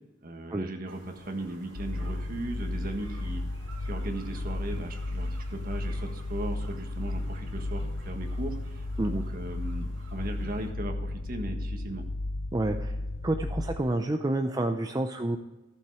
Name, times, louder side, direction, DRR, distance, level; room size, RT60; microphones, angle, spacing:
voice 1, 0.2-3.4 3.8-12.0, right 1 dB, 50° right, 5 dB, 1.5 m, -37 dB
sound 1, 0.9-10.7, right 2 dB, 80° right, 2.8 m, -52 dB
sound 2, 1.7-13.8, left 2 dB, 65° left, 0.6 m, -34 dB
voice 2, 12.5-12.9 13.2-15.4, right 1 dB, 20° right, 5 dB, 0.5 m, -29 dB
15.0 x 7.2 x 4.8 m, 1.1 s
head